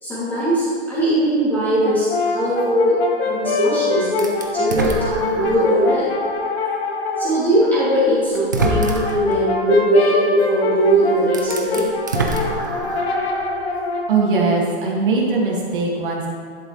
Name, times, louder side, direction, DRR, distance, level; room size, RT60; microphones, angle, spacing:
voice 1, 0.0-2.9 3.3-4.3 4.5-6.1 7.2-11.8, right 1 dB, 5° left, -11 dB, 2.6 m, -19 dB
Brass instrument, 1.8-7.4 8.3-14.2, left 3 dB, 70° left, 1.8 m, -25 dB
sound 1, 4.2-5.8 6.4-6.5 7.7-7.8 8.3-9.3 10.8-10.9 11.2-13.2, right 2 dB, 20° right, 0.4 m, -25 dB
voice 2, 14.1-16.3, right 3 dB, 50° right, -2 dB, 2.1 m, -20 dB
11.0 x 11.0 x 3.2 m, 2.2 s
hypercardioid pair, 170°, 32 cm